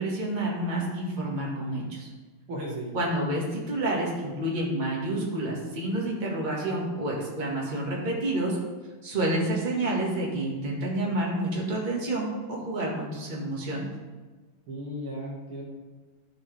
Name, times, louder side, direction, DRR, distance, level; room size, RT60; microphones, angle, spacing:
voice 1, 0.0-2.1 2.9-8.6 9.0-13.9, right 1 dB, 25° right, -3 dB, 1.7 m, -29 dB
voice 2, 2.5-2.9 14.7-15.6, equal, 80° right, -2 dB, 2.6 m, -35 dB
12.5 x 5.0 x 3.4 m, 1.3 s
omnidirectional pair, 2.3 m